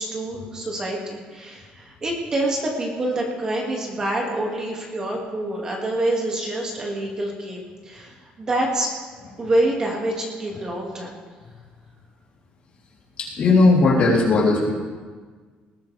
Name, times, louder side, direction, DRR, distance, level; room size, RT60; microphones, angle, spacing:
voice 1, 0.0-8.9 9.4-11.1, right 1 dB, 25° right, -1 dB, 2.2 m, -26 dB
voice 2, 13.2-14.7, left 3 dB, 40° left, -4 dB, 3.6 m, -17 dB
20.0 x 14.5 x 3.5 m, 1.5 s
cardioid pair, 165°, 3 cm